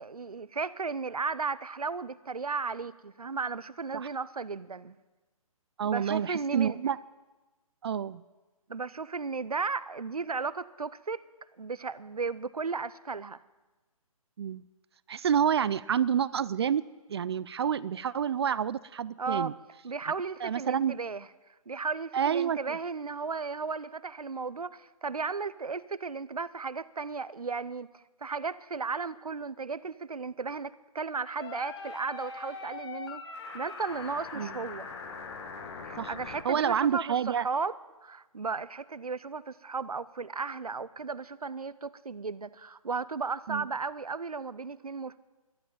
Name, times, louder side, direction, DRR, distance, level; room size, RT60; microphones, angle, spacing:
voice 1, 0.0-4.9 5.8-6.8 8.7-11.2 11.6-13.4 19.2-19.5 19.8-33.2 33.5-34.9 35.8-37.8 38.0-45.2, right 4 dB, 90° right, 17 dB, 0.7 m, -35 dB
voice 2, 5.8-7.0 7.8-8.2 14.4-14.6 15.1-16.8 17.1-19.5 20.4-20.9 22.1-22.8 34.4-34.5 36.0-36.1 36.4-37.5 43.5-43.7, right 8 dB, 45° right, 18 dB, 0.4 m, -28 dB
sound 1, 31.4-36.4, left 4 dB, 45° left, 1.8 m, -41 dB
12.0 x 11.5 x 8.7 m, 1.2 s
figure-of-eight pair, 140°, 18 cm